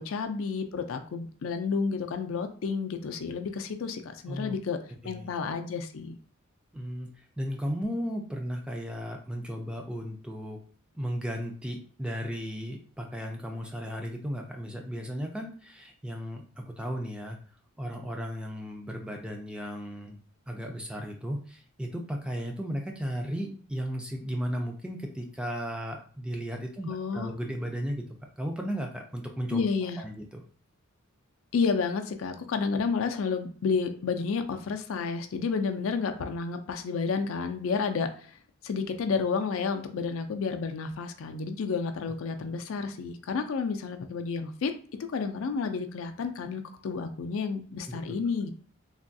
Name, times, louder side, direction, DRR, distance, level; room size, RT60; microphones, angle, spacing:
voice 1, 0.0-4.8 5.0-6.1 26.9-27.3 29.5-30.0 31.5-38.3 38.6-44.7 45.1-48.5, left 5 dB, 70° left, 7 dB, 0.4 m, -31 dB
voice 2, 6.7-10.6 10.9-17.4 17.8-20.2 20.5-28.0 28.4-29.6 30.0-30.4 47.9-48.2, equal, 5° right, 1 dB, 0.4 m, -35 dB
3.4 x 2.3 x 2.6 m, 0.43 s
head